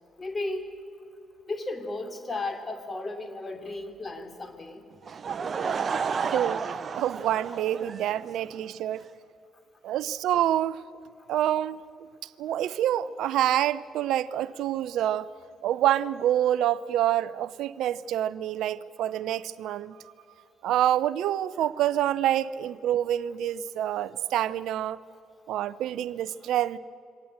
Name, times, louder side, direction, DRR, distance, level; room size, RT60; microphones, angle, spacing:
voice 1, 0.2-0.7 1.5-4.8, left 2 dB, 30° left, 7 dB, 2.9 m, -34 dB
Laughter / Crowd, 5.0-8.6, right 6 dB, 45° right, 0.8 m, -31 dB
voice 2, 6.2-6.6 6.9-9.1 9.8-10.8 11.3-11.8 12.4-15.3 15.6-20.0 20.6-25.0 25.5-26.8, right 12 dB, 65° right, 18 dB, 0.4 m, -27 dB
23.5 x 18.0 x 8.0 m, 2.6 s
figure-of-eight pair, 40°, 0 cm